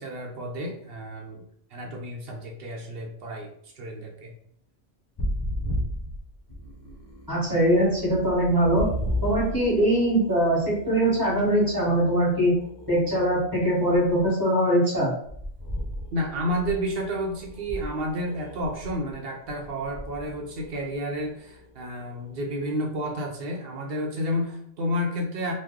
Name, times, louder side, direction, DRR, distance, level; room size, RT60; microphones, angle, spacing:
voice 1, 0.0-1.4 1.7-3.5 3.8-4.3 16.1-25.5, equal, 65° right, 1 dB, 0.8 m, -31 dB
sound 1, 5.2-14.3 15.2-22.9, equal, 35° left, 0.4 m, -36 dB
voice 2, 7.3-8.8 9.2-12.5 12.9-15.1, right 1 dB, 20° right, -6 dB, 1.3 m, -22 dB
3.0 x 2.1 x 3.5 m, 0.67 s
omnidirectional pair, 1.2 m